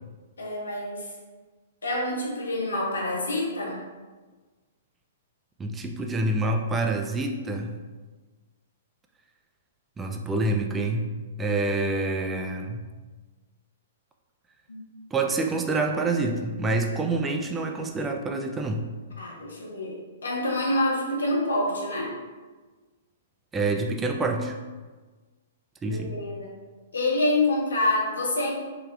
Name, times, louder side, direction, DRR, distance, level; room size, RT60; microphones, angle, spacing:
voice 1, 0.4-1.1 1.8-3.8 14.7-14.9 19.2-20.0 20.2-22.1 25.9-26.5 26.9-28.5, left 2 dB, 85° left, -3 dB, 0.9 m, -27 dB
voice 2, 5.6-7.7 10.0-11.1 11.4-12.8 15.1-18.9 23.5-24.6 25.8-26.2, right 2 dB, 15° right, 3 dB, 0.3 m, -27 dB
3.3 x 2.3 x 3.3 m, 1.3 s
hypercardioid pair, 125°, 0 cm